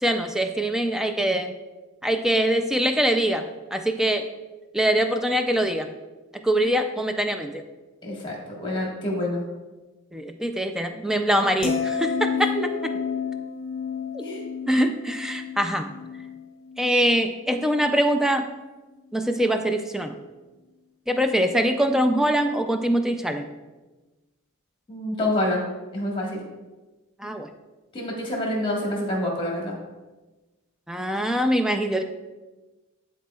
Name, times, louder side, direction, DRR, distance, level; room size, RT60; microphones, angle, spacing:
voice 1, 0.0-1.5 2.0-3.4 3.7-4.3 4.7-5.9 6.4-7.6 10.1-12.5 14.1-14.2 14.7-15.9 16.8-18.5 19.1-20.1 21.1-23.4 27.2-27.5 30.9-32.0, equal, ahead, 6 dB, 0.4 m, -23 dB
voice 2, 8.0-9.4 12.5-12.6 14.2-14.5 24.9-25.6 25.9-26.4 27.9-29.8, left 1 dB, 25° left, -2 dB, 1.5 m, -27 dB
sound 1, 11.6-17.9 18.2-18.6, left 6 dB, 65° left, 0.7 m, -31 dB
10.0 x 4.1 x 2.3 m, 1.2 s
head